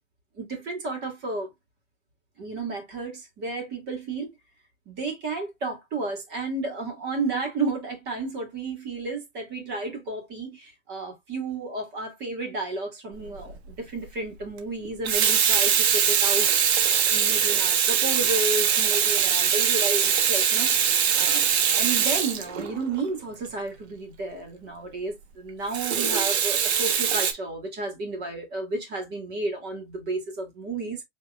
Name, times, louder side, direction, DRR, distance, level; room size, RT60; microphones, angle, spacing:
voice 1, 0.4-1.5 2.4-4.4 4.9-16.5 17.1-20.7 21.2-31.0, right 3 dB, 30° right, 2.0 m, -32 dB
Water tap faucet / Sink (filling or washing), 13.3-13.5 14.8-23.0 25.7-27.3, right 8 dB, 60° right, 1.3 m, -22 dB
5.1 x 3.3 x 2.4 m
hypercardioid pair, 145°, 36 cm